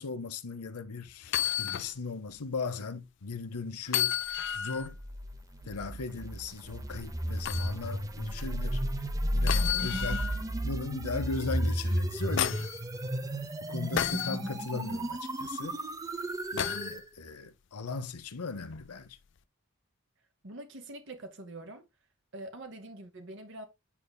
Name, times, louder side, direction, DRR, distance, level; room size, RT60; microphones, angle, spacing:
voice 1, 0.0-4.2 4.5-5.0 5.7-8.8 9.3-10.3 10.6-12.7 13.7-15.8 16.5-19.2, left 4 dB, 90° left, 0.8 m, -38 dB
sound 1, 1.2-1.9 2.4-2.5 3.9-4.9 7.4-7.7 9.5-10.4 11.9-12.8 14.0-14.4 16.6-16.9 18.7-18.9, left 10 dB, 55° left, 0.4 m, -31 dB
sound 2, 4.9-17.0, equal, 15° right, 0.6 m, -33 dB
voice 2, 20.4-21.9 22.3-23.7, right 2 dB, 55° right, 0.9 m, -44 dB
8.5 x 5.3 x 2.2 m
head